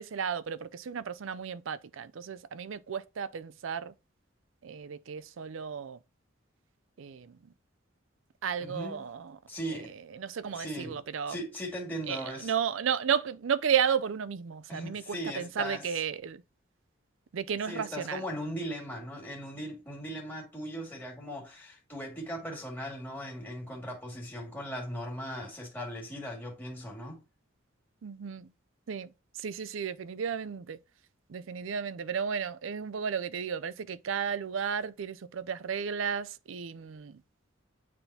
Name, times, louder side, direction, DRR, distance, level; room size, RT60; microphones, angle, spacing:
voice 1, 0.0-3.9 4.6-6.0 7.0-7.4 8.4-9.4 10.2-11.4 12.1-16.4 17.3-18.2 28.0-28.5 28.9-29.1 29.4-30.8 31.3-37.2, right 7 dB, 75° right, 0.5 m, -33 dB
voice 2, 8.6-9.1 9.5-10.0 10.5-12.5 14.7-16.0 17.7-27.2, equal, 10° left, 2.2 m, -38 dB
9.2 x 3.6 x 2.8 m
head